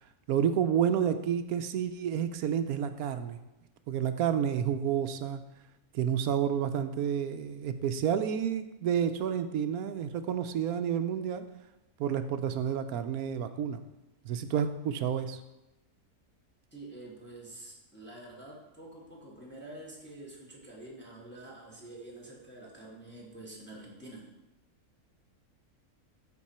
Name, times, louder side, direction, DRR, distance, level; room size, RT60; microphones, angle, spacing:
voice 1, 0.3-3.4 3.9-5.4 5.9-11.4 12.0-13.8 14.2-15.4, right 8 dB, 75° right, 9 dB, 1.1 m, -30 dB
voice 2, 16.7-24.3, right 2 dB, 5° left, -3 dB, 1.5 m, -47 dB
13.5 x 4.5 x 4.3 m, 0.96 s
omnidirectional pair, 1.6 m